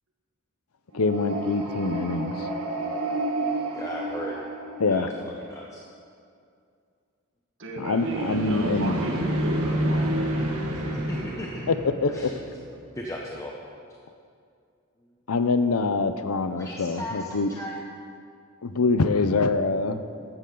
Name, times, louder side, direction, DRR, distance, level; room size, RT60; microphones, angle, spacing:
voice 1, 0.9-2.5 4.8-5.1 7.8-9.1 11.7-12.3 15.3-17.5 18.6-20.0, left 3 dB, 75° left, 10 dB, 0.7 m, -24 dB
sound 1, 0.9-5.3 7.8-12.8, right 1 dB, 80° right, 1.7 m, -30 dB
voice 2, 3.7-4.4 4.9-5.8 10.7-11.7 12.1-12.3 12.9-13.5 16.6-17.8, left 1 dB, 15° left, -2 dB, 0.8 m, -37 dB
voice 3, 7.6-10.1, right 1 dB, 60° right, 1 dB, 1.6 m, -32 dB
15.0 x 12.0 x 3.9 m, 2.4 s
head